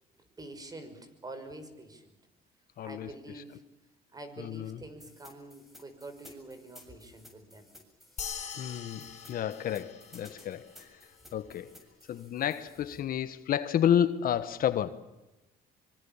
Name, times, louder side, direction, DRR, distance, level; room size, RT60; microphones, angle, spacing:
voice 1, 0.4-2.1 2.8-3.6 4.1-7.7, right 2 dB, 20° right, 5.7 m, -46 dB
voice 2, 2.8-3.1 4.4-4.8 8.6-10.9 11.3-11.7 12.1-14.9, left 10 dB, 60° left, 1.4 m, -30 dB
sound 1, 5.0-13.0, left 1 dB, ahead, 7.5 m, -56 dB
sound 2, 8.2-10.9, left 7 dB, 40° left, 6.1 m, -43 dB
25.0 x 24.0 x 7.3 m
cardioid pair, 110°, 17 cm